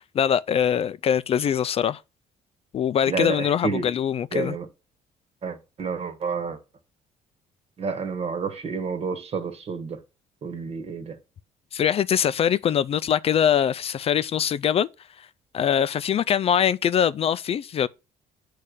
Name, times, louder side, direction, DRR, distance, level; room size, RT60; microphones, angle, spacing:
voice 1, 0.0-2.0 2.7-4.5 11.7-14.9 15.5-17.9, left 9 dB, 45° left, 0.4 m, -23 dB
voice 2, 3.1-3.9 4.3-4.7 5.4-6.6 7.8-10.0 10.4-11.2, right 5 dB, 45° right, 1.4 m, -30 dB
8.3 x 3.3 x 6.6 m
cardioid pair, 100°, 14 cm